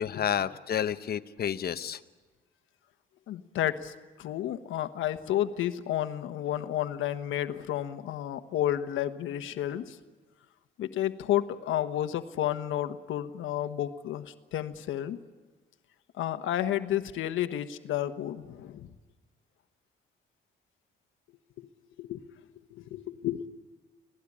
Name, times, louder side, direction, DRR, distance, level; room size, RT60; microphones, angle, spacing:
voice 1, 0.0-2.0, left 9 dB, 50° left, 11 dB, 1.0 m, -30 dB
voice 2, 3.3-10.0 10.8-15.2 16.1-18.9 21.6-21.7 22.0-23.5, left 12 dB, 80° left, 10 dB, 1.3 m, -31 dB
25.5 x 17.5 x 8.6 m, 1.4 s
cardioid pair, 90°, 20 cm